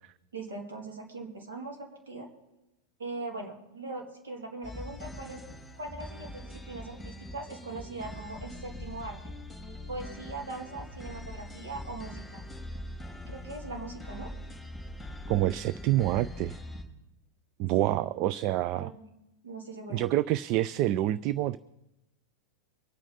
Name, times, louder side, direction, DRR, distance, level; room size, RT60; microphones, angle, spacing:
voice 1, 0.3-2.3 3.0-5.5 5.8-9.2 9.9-12.4 13.3-14.3 17.8-18.0 18.7-19.0 19.4-20.0, right 3 dB, 65° right, 0 dB, 2.9 m, -40 dB
sound 1, 4.6-16.8, left 1 dB, ahead, 3.0 m, -42 dB
voice 2, 15.3-16.6 17.6-18.9 19.9-21.6, right 14 dB, 40° right, 17 dB, 0.4 m, -27 dB
24.5 x 9.0 x 4.1 m, 0.93 s
figure-of-eight pair, 90°, 0 cm